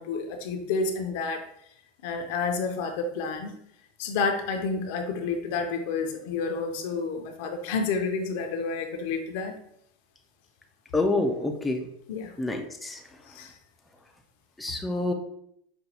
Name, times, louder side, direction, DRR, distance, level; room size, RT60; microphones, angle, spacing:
voice 1, 0.0-1.4 2.0-3.6 4.0-9.6 12.1-12.3 13.3-13.5, left 4 dB, 65° left, 5 dB, 0.6 m, -30 dB
voice 2, 10.9-11.9 12.4-13.0 14.6-15.1, left 2 dB, 5° left, 2 dB, 0.4 m, -27 dB
5.1 x 2.2 x 2.8 m, 0.72 s
supercardioid pair, 135°, 0 cm